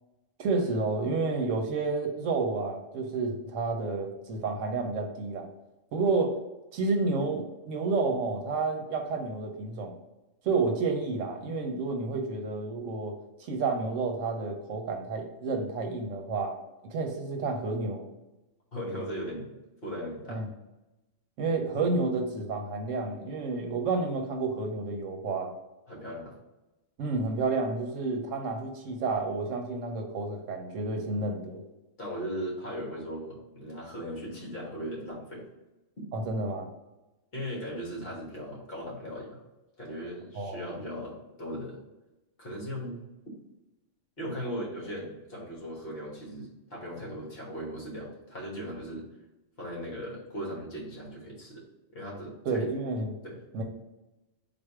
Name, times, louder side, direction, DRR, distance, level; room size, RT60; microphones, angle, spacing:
voice 1, 0.4-5.5 5.9-6.3 6.7-10.0 10.4-13.1 13.4-16.6 16.8-18.0 20.3-20.5 21.4-25.5 27.0-31.6 36.1-36.7 40.3-40.8 52.4-53.1 53.5-53.6, right 3 dB, 80° right, 3 dB, 1.1 m, -30 dB
voice 2, 18.7-19.5 19.8-20.4 25.9-26.3 32.0-35.5 37.3-39.4 39.8-41.8 42.4-43.1 44.2-49.1 49.6-51.6 51.9-52.7 53.2-53.4, equal, 50° left, -4 dB, 1.6 m, -38 dB
3.8 x 2.6 x 4.6 m, 1.0 s
omnidirectional pair, 1.3 m